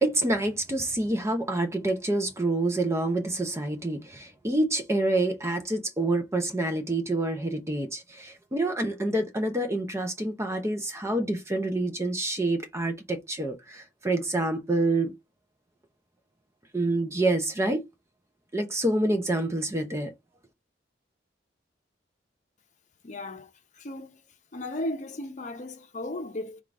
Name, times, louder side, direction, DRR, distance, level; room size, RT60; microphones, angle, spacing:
voice 1, 0.0-15.1 16.7-17.8 18.5-20.1, right 2 dB, 15° right, 0.6 m, -27 dB
voice 2, 23.0-24.2 24.5-26.6, left 1 dB, 40° left, 0.7 m, -36 dB
3.7 x 2.4 x 4.6 m
head